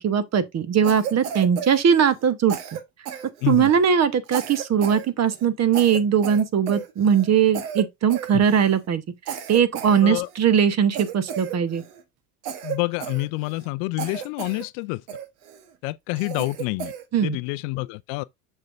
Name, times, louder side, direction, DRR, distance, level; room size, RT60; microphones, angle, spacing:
voice 1, 0.0-2.6 3.5-9.0 9.3-11.8 17.1-17.4, right 7 dB, 35° right, 1.1 m, -20 dB
Cough, 0.8-2.3 2.5-3.8 4.3-5.1 5.3-5.5 5.7-7.3 7.5-8.8 9.3-10.5 10.9-12.0 12.4-13.7 14.0-14.7 15.1-15.6 16.2-17.1, right 9 dB, 75° right, 1.3 m, -34 dB
voice 2, 12.6-15.0 15.8-16.9 17.2-18.2, left 22 dB, 55° left, 0.5 m, -27 dB
6.6 x 6.5 x 2.5 m
hypercardioid pair, 80°, 46 cm